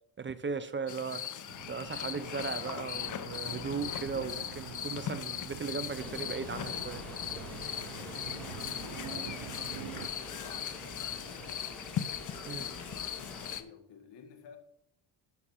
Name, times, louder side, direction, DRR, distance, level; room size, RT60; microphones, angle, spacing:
voice 1, 0.2-1.3 1.7-7.0 12.5-12.7, right 5 dB, 25° right, 0.6 m, -37 dB
sound 1, 0.9-13.6, left 9 dB, 45° left, 0.8 m, -39 dB
sound 2, 1.5-10.1, right 12 dB, 90° right, 0.8 m, -46 dB
sound 3, 5.9-13.6, equal, 5° left, 4.4 m, -47 dB
voice 2, 8.1-11.7 12.9-14.6, left 7 dB, 70° left, 2.0 m, -53 dB
11.5 x 6.0 x 5.5 m
cardioid pair, 115°, 43 cm